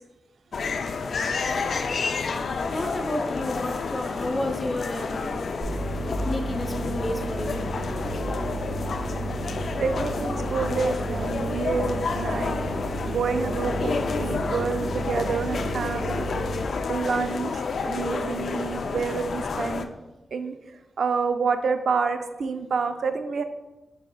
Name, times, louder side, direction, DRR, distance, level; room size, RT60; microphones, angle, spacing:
sound 1, 0.5-19.8, left 4 dB, 70° left, 0.3 m, -30 dB
voice 1, 2.7-5.6 6.1-7.7, left 1 dB, 30° left, 3 dB, 0.7 m, -31 dB
sound 2, 5.6-16.6, right 2 dB, ahead, 1.1 m, -33 dB
voice 2, 9.8-12.6 13.1-16.3 16.9-19.9 20.3-20.6 21.0-23.4, right 5 dB, 75° right, 8 dB, 0.3 m, -28 dB
4.8 x 4.8 x 2.2 m, 1.0 s
cardioid pair, 55°, 0 cm